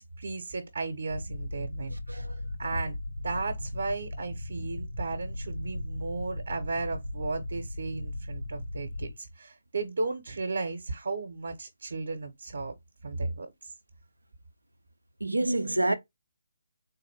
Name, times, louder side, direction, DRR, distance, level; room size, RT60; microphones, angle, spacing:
voice 1, 0.0-3.0 3.2-12.7 13.0-13.7, right 3 dB, 60° right, 0.9 m, -35 dB
sound 1, 1.1-9.1, left 1 dB, 85° left, 1.9 m, -37 dB
voice 2, 15.2-15.9, right 2 dB, 85° right, 0.5 m, -27 dB
4.0 x 2.5 x 2.8 m
figure-of-eight pair, 145°, 0 cm